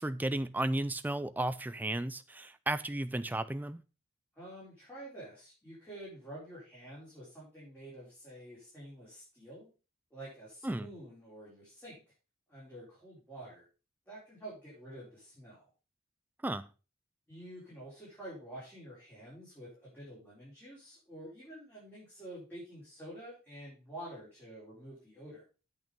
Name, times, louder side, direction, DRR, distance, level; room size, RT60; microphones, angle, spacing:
voice 1, 0.0-3.8 10.6-10.9 16.4-16.7, right 1 dB, 10° right, 0.4 m, -34 dB
voice 2, 4.3-9.7 10.1-12.0 12.5-13.7 14.1-15.7 17.3-25.4, right 1 dB, 10° left, 4.6 m, -48 dB
8.6 x 6.2 x 5.3 m
head